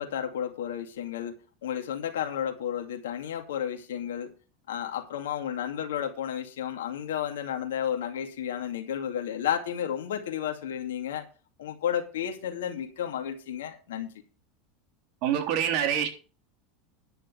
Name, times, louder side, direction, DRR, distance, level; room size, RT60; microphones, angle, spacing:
voice 1, 0.0-1.3 1.6-4.3 4.7-11.2 11.6-14.1, left 9 dB, 85° left, 2.4 m, -32 dB
voice 2, 15.2-16.1, right 9 dB, 60° right, 3.4 m, -25 dB
11.0 x 6.9 x 7.0 m
supercardioid pair, 110°, 0 cm